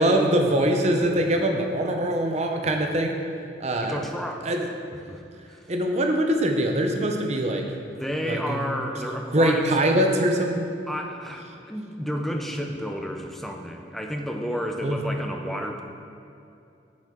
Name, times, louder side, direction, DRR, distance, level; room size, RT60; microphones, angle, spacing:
voice 1, 0.0-3.1 3.6-4.0 4.4-4.7 5.7-7.9 8.2-8.6 9.3-10.7 14.8-15.0, right 1 dB, 40° right, 3 dB, 0.7 m, -23 dB
voice 2, 3.8-4.5 4.9-5.2 5.5-5.6 7.9-9.6 10.9-15.8, equal, ahead, 2 dB, 0.5 m, -31 dB
8.7 x 6.3 x 3.8 m, 2.6 s
head